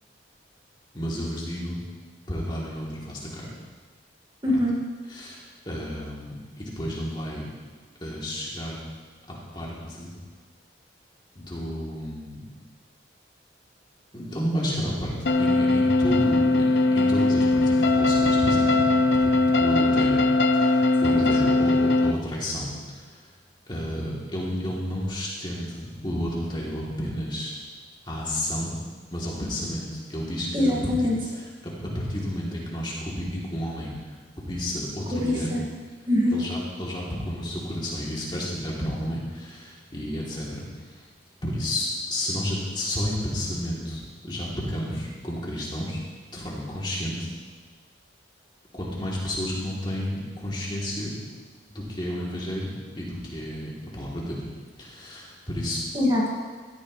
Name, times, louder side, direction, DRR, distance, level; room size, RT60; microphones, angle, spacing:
voice 1, 0.9-1.8 2.3-3.5 5.1-7.4 8.0-8.8 9.3-10.1 11.3-12.5 14.1-18.7 19.2-19.3 19.6-20.3 20.5-23.3 23.7-27.5 28.0-28.7 29.1-31.1 31.3-34.2 34.5-35.5 36.3-41.1 41.4-46.0 46.3-47.3 48.7-51.2 51.7-54.4 54.8-55.8, equal, 25° left, -5 dB, 3.2 m, -31 dB
voice 2, 4.4-4.7 21.1-21.2 30.5-31.1 35.1-35.6 36.1-36.4 55.9-56.3, left 1 dB, 25° right, -5 dB, 2.2 m, -23 dB
sound 1, 15.3-22.1, left 2 dB, 65° left, 0.7 m, -20 dB
17.0 x 14.0 x 3.3 m, 1.4 s
head